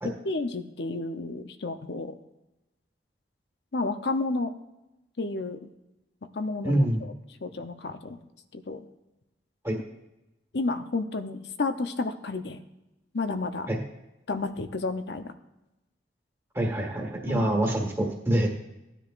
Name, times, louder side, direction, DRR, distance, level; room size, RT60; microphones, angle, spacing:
voice 1, 0.0-2.1 3.7-4.5 5.2-5.7 6.3-7.1 7.4-8.2 8.7-8.8 10.5-12.6 13.1-13.7 14.3-15.3 17.3-17.6, left 3 dB, 75° left, 9 dB, 0.7 m, -31 dB
voice 2, 6.6-7.0 9.6-9.7 13.7-13.8 16.5-18.5, right 1 dB, 15° right, 0 dB, 1.7 m, -25 dB
17.0 x 10.0 x 2.5 m, 0.96 s
head